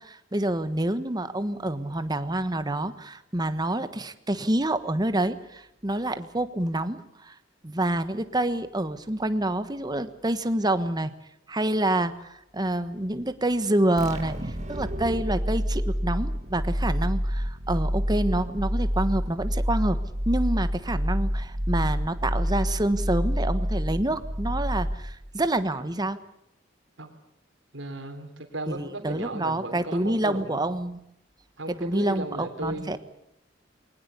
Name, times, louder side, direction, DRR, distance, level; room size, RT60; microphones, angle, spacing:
voice 1, 0.0-7.3 7.6-11.1 11.5-14.4 14.7-20.0 20.3-26.2 28.7-31.0 31.8-33.0, right 1 dB, 20° right, 11 dB, 1.3 m, -27 dB
sound 1, 14.0-25.4, equal, 40° right, 2.1 m, -28 dB
voice 2, 27.7-30.6 31.6-33.0, right 2 dB, 80° right, 6 dB, 3.5 m, -36 dB
21.5 x 19.5 x 8.3 m, 0.77 s
head